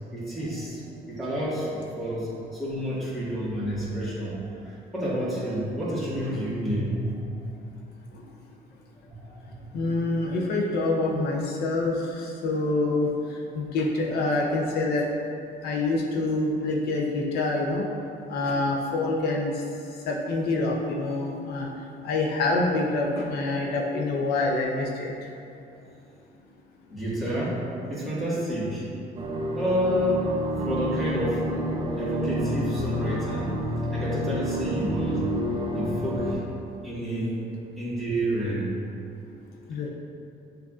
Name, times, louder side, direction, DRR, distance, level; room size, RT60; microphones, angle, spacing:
voice 1, 0.1-1.7 2.0-7.3 9.1-9.2 26.9-27.6 27.9-28.8 29.5-30.3 30.6-31.4 32.0-33.5 33.9-35.2 35.7-36.4 36.8-37.3 37.8-38.7, equal, ahead, -10 dB, 1.5 m, -29 dB
voice 2, 9.7-15.1 15.6-17.9 18.3-25.3 39.7-39.9, left 2 dB, 70° left, -2 dB, 0.6 m, -26 dB
sound 1, 29.2-36.3, equal, 30° right, 0.5 m, -29 dB
7.1 x 2.6 x 2.4 m, 2.6 s
cardioid pair, 110°, 17 cm